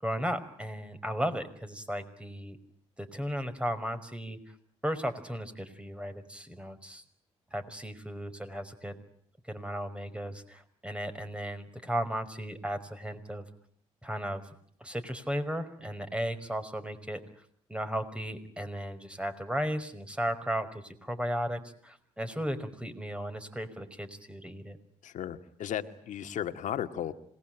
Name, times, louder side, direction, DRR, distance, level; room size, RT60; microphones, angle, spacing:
voice 1, 0.0-2.6 3.0-4.4 4.8-7.0 7.5-9.0 9.5-13.4 14.0-14.4 14.8-17.2 17.7-24.8, equal, 10° right, 9 dB, 5.3 m, -35 dB
voice 2, 25.0-27.1, left 10 dB, 70° left, 9 dB, 1.9 m, -35 dB
27.0 x 20.5 x 9.1 m, 0.66 s
supercardioid pair, 60°, 13 cm